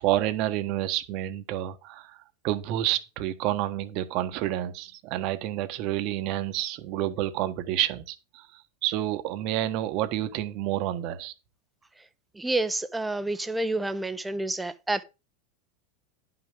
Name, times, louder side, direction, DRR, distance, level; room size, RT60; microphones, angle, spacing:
voice 1, 0.0-2.2 2.4-8.5 8.8-11.3, right 13 dB, 50° right, 1.3 m, -29 dB
voice 2, 12.4-15.0, right 2 dB, 10° right, 0.9 m, -29 dB
10.5 x 6.0 x 5.1 m
hypercardioid pair, 115°, 0 cm